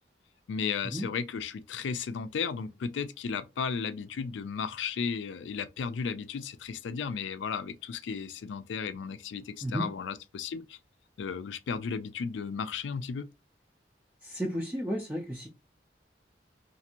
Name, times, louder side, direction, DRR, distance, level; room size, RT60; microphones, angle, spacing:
voice 1, 0.5-10.8 11.2-13.3, left 6 dB, 90° left, 0.4 m, -34 dB
voice 2, 14.2-15.5, equal, 10° right, 0.4 m, -33 dB
2.5 x 2.5 x 2.8 m
head